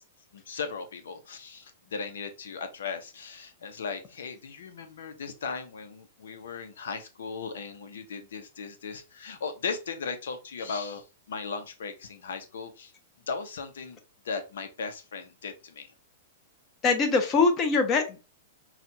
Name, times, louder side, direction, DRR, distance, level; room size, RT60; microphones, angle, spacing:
voice 1, 0.3-12.9 13.3-14.0 14.2-15.9, left 5 dB, 85° left, 8 dB, 0.8 m, -37 dB
voice 2, 16.8-18.2, left 4 dB, 25° left, 4 dB, 1.0 m, -23 dB
5.7 x 2.4 x 2.7 m, 0.29 s
hypercardioid pair, 145°, 0 cm